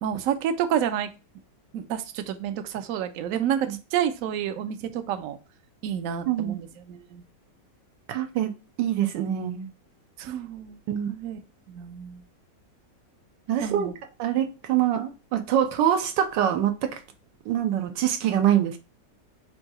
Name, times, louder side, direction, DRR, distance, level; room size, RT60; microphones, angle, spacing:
voice 1, 0.0-1.1 1.7-5.4 5.8-7.2 10.2-10.8 11.1-11.4 11.7-12.2 13.6-13.9, right 9 dB, 70° right, 0.8 m, -29 dB
voice 2, 8.1-9.7 10.9-11.1 13.5-13.9 14.2-17.0 17.5-18.8, right 10 dB, 90° right, 1.4 m, -25 dB
3.8 x 2.7 x 4.7 m
omnidirectional pair, 1.9 m